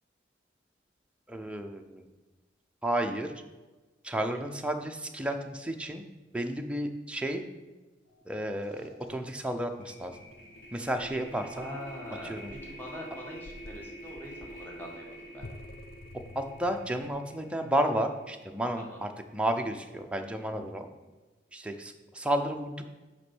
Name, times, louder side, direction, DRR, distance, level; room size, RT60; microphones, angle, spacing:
voice 1, 1.3-2.1 2.8-3.3 4.0-6.0 6.3-7.4 8.3-10.2 10.7-11.7 12.2-12.5 16.4-20.9 21.5-22.9, right 1 dB, 5° right, 4 dB, 0.6 m, -32 dB
sound 1, 8.1-8.2 8.5-18.8, right 1 dB, 90° left, 2.0 m, -48 dB
sound 2, 10.0-17.1, left 1 dB, 55° left, 0.6 m, -50 dB
voice 2, 11.5-15.4 18.8-19.0, equal, 10° left, -3 dB, 1.8 m, -43 dB
6.4 x 5.3 x 6.0 m, 1.2 s
head